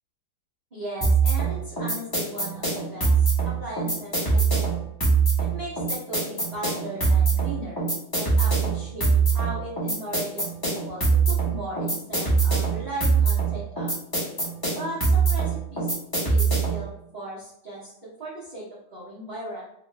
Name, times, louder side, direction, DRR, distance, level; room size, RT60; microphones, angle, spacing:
voice 1, 0.7-4.9 5.4-7.8 8.1-13.9 14.8-15.9 16.2-17.9 18.2-19.6, right 1 dB, 60° right, -10 dB, 0.4 m, -37 dB
sound 1, 1.0-16.9, right 4 dB, 15° left, 0.8 m, -23 dB
3.0 x 2.9 x 3.3 m, 0.75 s
omnidirectional pair, 2.3 m